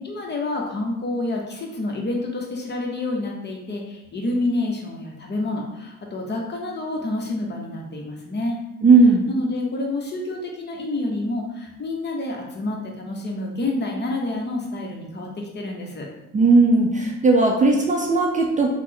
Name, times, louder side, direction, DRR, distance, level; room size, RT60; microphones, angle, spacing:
voice 1, 0.0-8.6 9.3-16.1, left 2 dB, 35° left, 0 dB, 0.7 m, -28 dB
voice 2, 8.8-9.2 16.3-18.7, right 3 dB, 25° right, 0 dB, 0.4 m, -16 dB
3.1 x 2.0 x 3.7 m, 0.93 s
cardioid pair, 90°, 30 cm